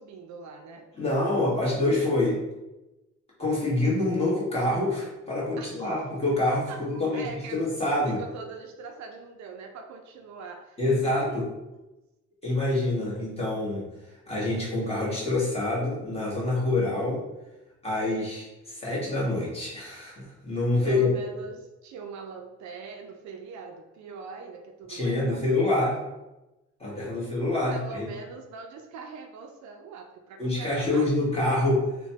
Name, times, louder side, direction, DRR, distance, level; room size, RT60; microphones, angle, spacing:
voice 1, 0.0-0.9 5.6-5.9 6.7-6.8 7.1-11.5 13.0-13.1 20.8-25.9 27.1-27.2 27.7-31.2, right 4 dB, 70° right, 4 dB, 0.4 m, -42 dB
voice 2, 1.0-2.4 3.4-7.2 7.5-8.2 10.8-11.5 12.4-13.8 14.3-17.2 17.8-21.1 24.9-26.0 26.8-28.1 30.4-31.8, left 2 dB, 20° left, -6 dB, 1.3 m, -26 dB
3.0 x 2.2 x 2.8 m, 1.0 s
cardioid pair, 90°, 30 cm